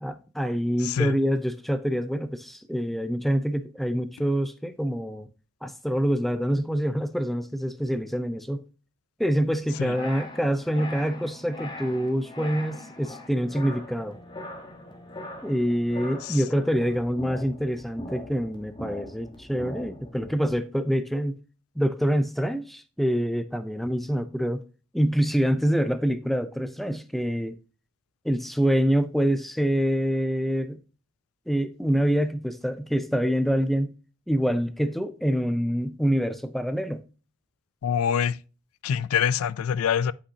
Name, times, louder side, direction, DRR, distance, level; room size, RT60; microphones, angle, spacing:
voice 1, 0.0-5.3 5.6-8.6 9.2-14.2 15.4-21.4 21.8-24.6 24.9-27.6 28.2-30.8 31.5-33.9 34.3-37.0, equal, ahead, 0.4 m, -26 dB
sound 1, 9.7-20.6, left 1 dB, 20° left, 1.1 m, -41 dB
voice 2, 37.8-38.4 38.8-40.1, left 8 dB, 85° left, 0.4 m, -24 dB
8.4 x 5.2 x 2.7 m
head